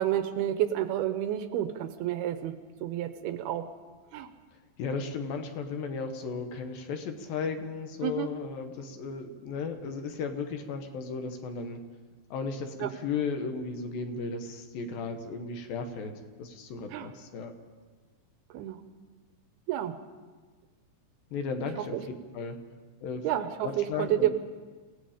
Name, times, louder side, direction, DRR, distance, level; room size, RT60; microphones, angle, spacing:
voice 1, 0.0-2.5 2.8-3.7 4.1-4.3 8.0-8.3 12.8-12.9 16.9-17.1 18.5-18.8 19.7-19.9 21.9-22.0 23.2-24.3, right 12 dB, 75° right, 10 dB, 2.4 m, -29 dB
voice 2, 4.8-11.8 12.3-16.1 16.4-17.5 21.3-22.0 22.3-22.6 23.0-23.3 23.6-24.3, left 5 dB, 65° left, 6 dB, 2.6 m, -35 dB
28.0 x 18.0 x 5.1 m, 1.4 s
omnidirectional pair, 5.2 m